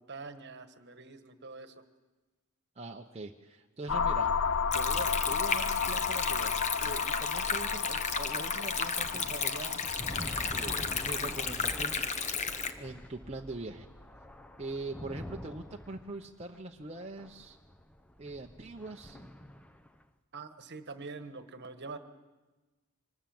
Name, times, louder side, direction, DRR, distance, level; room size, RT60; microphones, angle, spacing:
voice 1, 0.0-1.7 20.3-22.0, right 4 dB, 50° right, 9 dB, 1.4 m, -45 dB
voice 2, 2.8-4.3 4.7-12.5 12.8-13.9 14.6-17.6 18.2-19.2, right 2 dB, 30° right, 0 dB, 0.9 m, -43 dB
sound 1, 3.9-11.5, left 6 dB, 70° left, 0.7 m, -33 dB
Stream, 4.7-12.7, left 5 dB, 35° left, 1.0 m, -33 dB
sound 2, 6.5-20.0, equal, 5° left, 0.9 m, -47 dB
25.0 x 20.0 x 7.8 m, 1.2 s
head